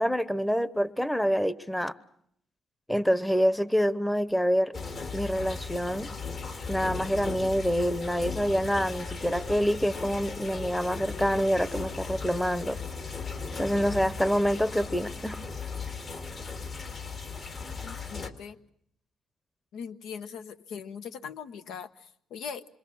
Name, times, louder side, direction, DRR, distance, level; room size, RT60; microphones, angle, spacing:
voice 1, 0.0-1.9 2.9-4.8 5.1-6.1 6.7-12.8 13.6-15.4, equal, 5° left, 16 dB, 0.9 m, -26 dB
sound 1, 4.7-18.3, left 4 dB, 45° left, 2.1 m, -37 dB
sound 2, 7.4-14.1, left 3 dB, 60° left, 5.8 m, -46 dB
voice 2, 17.8-18.6 19.7-22.6, left 7 dB, 85° left, 10 dB, 0.9 m, -40 dB
26.5 x 24.0 x 6.2 m, 0.70 s
cardioid pair, 90°, 0 cm